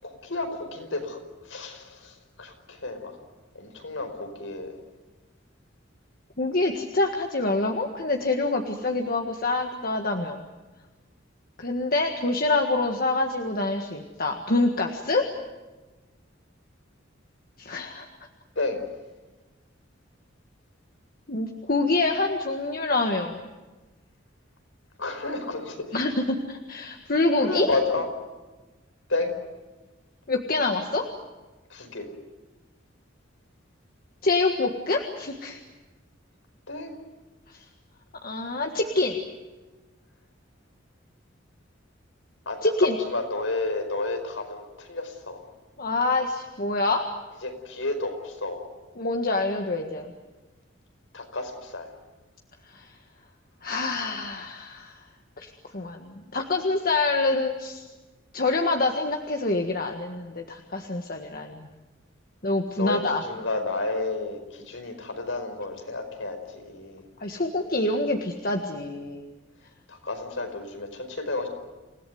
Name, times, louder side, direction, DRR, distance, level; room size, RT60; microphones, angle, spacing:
voice 1, 0.0-1.2 1.5-3.1 3.5-4.8 18.5-18.8 25.0-25.8 27.4-28.1 29.1-29.3 31.7-32.1 36.7-36.9 42.4-42.6 43.1-45.4 47.4-48.6 51.1-51.9 62.8-67.0 69.9-71.5, left 2 dB, 80° left, 6 dB, 5.1 m, -31 dB
voice 2, 6.4-10.4 11.6-15.3 17.6-18.1 21.3-23.4 25.9-27.7 30.3-31.0 34.2-35.6 37.5-37.6 38.2-39.2 42.6-42.9 45.8-47.0 48.9-50.1 52.7-52.9 53.6-55.0 55.4-57.8 58.3-61.7 62.4-63.2 67.2-69.2, left 2 dB, 50° left, 3 dB, 1.7 m, -26 dB
28.5 x 17.5 x 9.4 m, 1.2 s
head